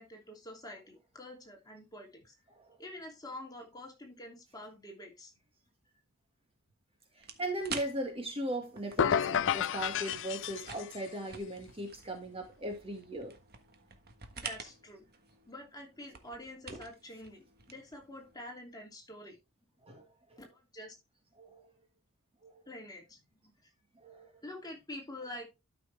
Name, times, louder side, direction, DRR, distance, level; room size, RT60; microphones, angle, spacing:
voice 1, 0.0-2.3 2.8-5.3 14.4-15.0 15.5-19.4 20.5-21.0 22.7-23.5 24.4-25.5, left 1 dB, 20° left, 2.9 m, -47 dB
voice 2, 7.2-13.3 16.7-16.8 19.8-20.4 21.4-21.7 22.4-22.6 24.0-24.4, right 1 dB, 25° right, 2.0 m, -38 dB
sound 1, 7.2-18.4, right 6 dB, 45° right, 1.4 m, -49 dB
sound 2, 9.0-11.1, left 8 dB, 60° left, 0.5 m, -31 dB
12.0 x 6.0 x 3.5 m
head